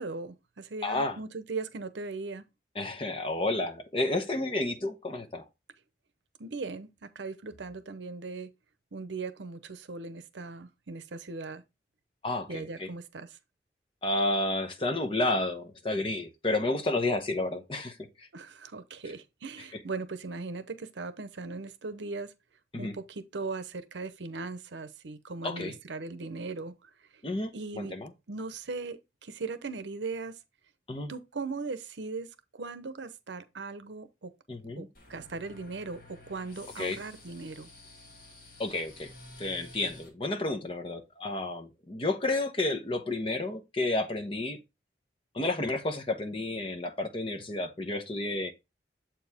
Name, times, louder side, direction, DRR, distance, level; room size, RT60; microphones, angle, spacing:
voice 1, 0.0-2.4 6.4-8.5 8.9-11.6 12.5-13.4 18.3-22.3 22.8-26.9 27.5-28.0 28.3-30.4 31.1-32.3 32.5-34.3 34.8-37.7, right 3 dB, 80° right, 0.7 m, -39 dB
voice 2, 0.8-1.2 2.7-5.4 12.2-12.9 14.0-18.3 22.7-22.9 25.4-25.8 27.2-28.1 30.9-31.1 34.5-34.9 36.8-37.0 38.6-39.1 39.4-44.6 45.3-48.5, left 2 dB, 30° left, 0.8 m, -31 dB
sound 1, 34.9-40.1, left 2 dB, 50° left, 2.1 m, -51 dB
7.4 x 4.6 x 3.4 m
head